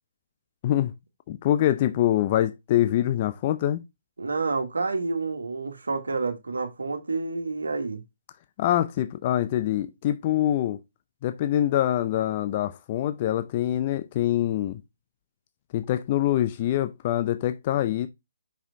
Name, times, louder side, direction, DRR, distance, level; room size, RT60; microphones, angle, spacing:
voice 1, 1.3-3.8 8.6-10.8 11.2-14.8 15.7-18.1, left 12 dB, 35° left, 0.5 m, -24 dB
voice 2, 4.2-8.0, right 3 dB, 80° right, 1.6 m, -29 dB
5.7 x 5.0 x 4.0 m
figure-of-eight pair, 140°, 0 cm